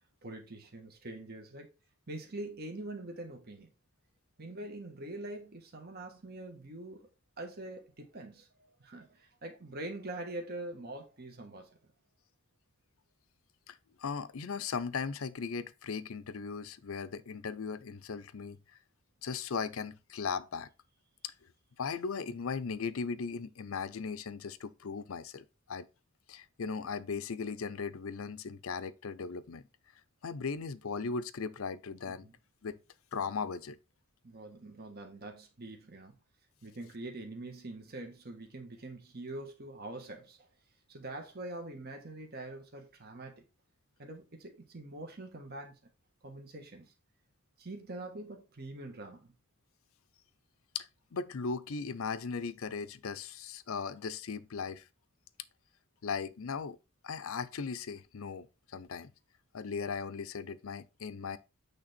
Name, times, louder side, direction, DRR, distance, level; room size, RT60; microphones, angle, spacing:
voice 1, 0.2-1.7 2.1-3.7 4.4-7.1 7.4-11.8 32.1-32.3 34.2-36.1 36.6-40.5 40.9-43.4 44.0-45.8 46.2-46.9 47.6-49.3, right 2 dB, 45° right, 1.4 m, -44 dB
voice 2, 13.7-18.6 19.2-20.7 21.8-25.9 26.3-29.6 30.2-32.3 32.6-32.8 33.1-33.8 50.7-54.8 56.0-56.8 57.0-59.1 59.5-61.4, left 5 dB, 70° left, 0.5 m, -38 dB
8.7 x 3.4 x 4.2 m
head